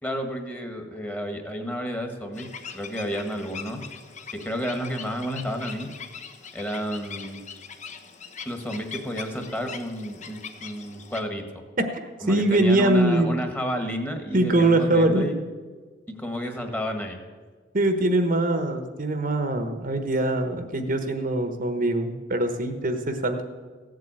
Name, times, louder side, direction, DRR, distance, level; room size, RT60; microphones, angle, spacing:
voice 1, 0.0-2.5 2.7-3.8 4.3-5.9 6.5-7.4 8.4-11.4 12.2-15.3 16.1-17.2, equal, 10° left, 5 dB, 1.6 m, -31 dB
sound 1, 2.3-11.2, left 6 dB, 40° left, 1.1 m, -41 dB
voice 2, 11.8-13.3 14.3-15.4 17.7-23.4, right 1 dB, 50° right, 7 dB, 1.2 m, -23 dB
16.0 x 7.7 x 8.9 m, 1.4 s
head